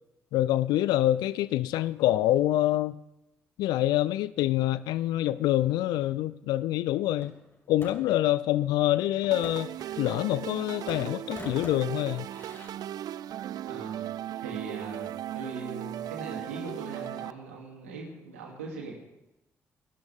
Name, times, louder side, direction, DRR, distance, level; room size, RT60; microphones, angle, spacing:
voice 1, 0.3-3.0 3.6-7.3 7.7-9.7 10.0-12.3, left 14 dB, 70° left, 17 dB, 0.4 m, -26 dB
sound 1, 7.2-8.3 9.2-10.6 10.9-12.7, left 2 dB, 35° left, 5.8 m, -46 dB
sound 2, 9.3-17.3, right 12 dB, 60° right, 0.4 m, -37 dB
voice 2, 13.4-14.0 14.4-18.9, right 3 dB, 85° right, 0 dB, 2.9 m, -40 dB
25.5 x 12.5 x 3.6 m, 0.92 s
hypercardioid pair, 40°, 7 cm